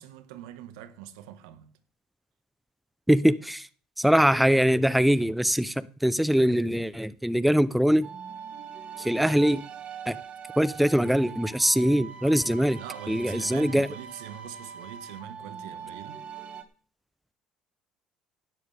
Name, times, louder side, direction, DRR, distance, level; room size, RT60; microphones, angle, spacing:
voice 1, 0.0-1.7 12.8-16.2, right 11 dB, 85° right, 1.6 m, -43 dB
voice 2, 3.1-3.7 4.0-8.1 9.0-9.6 10.1-10.2 10.6-12.8 13.1-13.9, equal, ahead, 0.7 m, -22 dB
sound 1, 8.0-16.6, right 6 dB, 50° right, 2.7 m, -42 dB
16.5 x 12.5 x 3.5 m
supercardioid pair, 80°, 3 cm